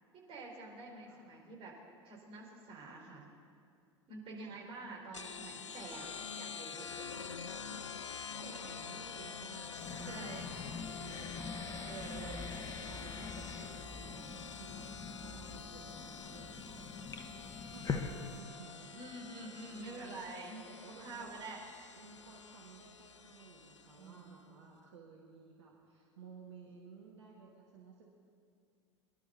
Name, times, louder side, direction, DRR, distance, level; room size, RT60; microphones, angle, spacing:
voice 1, 0.1-1.8 2.0-3.3 4.1-6.9 10.1-10.4 11.7-12.5 15.9-16.0 18.9-20.6 21.0-21.6 24.0-24.4, right 3 dB, 35° right, -2 dB, 4.6 m, -47 dB
voice 2, 1.0-1.4 4.4-4.6 7.3-7.9 8.1-11.5 11.8-16.9 17.6-19.1 19.7-20.3 20.7-21.3 22.0-28.1, right 5 dB, 70° right, -2 dB, 2.0 m, -56 dB
sound 1, 5.1-24.3, left 6 dB, 80° left, 0.5 m, -47 dB
sound 2, 9.8-18.4, left 5 dB, 25° left, 1.2 m, -44 dB
24.0 x 11.5 x 4.2 m, 2.3 s
figure-of-eight pair, 80°, 15 cm